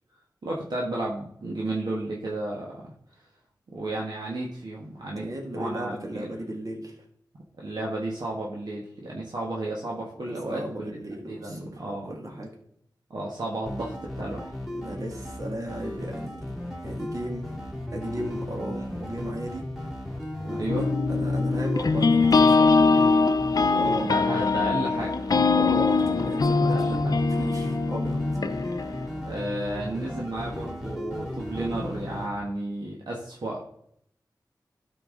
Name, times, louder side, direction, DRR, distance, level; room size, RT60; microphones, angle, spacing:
voice 1, 0.4-2.9 3.7-6.3 7.6-11.0 11.3-12.1 13.1-14.5 20.5-20.9 24.0-25.1 26.7-27.2 29.2-33.6, right 2 dB, 70° right, -3 dB, 1.5 m, -33 dB
voice 2, 5.1-6.9 10.2-12.5 14.7-16.4 16.8-17.5 17.9-19.7 20.4-22.9 23.7-24.1 25.5-28.2, right 1 dB, 50° right, 0 dB, 2.0 m, -35 dB
sound 1, 13.6-32.3, left 1 dB, ahead, 2.3 m, -36 dB
sound 2, 20.7-29.1, left 4 dB, 60° left, 0.5 m, -22 dB
12.5 x 4.7 x 3.8 m, 0.70 s
wide cardioid pair, 70°, 7 cm